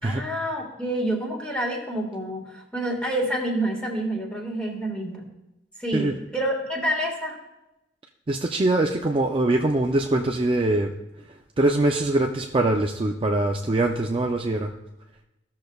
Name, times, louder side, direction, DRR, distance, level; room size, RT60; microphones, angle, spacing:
voice 1, 0.0-5.3 5.8-7.4, right 1 dB, 5° left, -1 dB, 1.6 m, -28 dB
voice 2, 8.3-10.9 11.6-14.7, right 2 dB, 30° right, 2 dB, 0.4 m, -23 dB
15.5 x 6.5 x 2.3 m, 0.94 s
head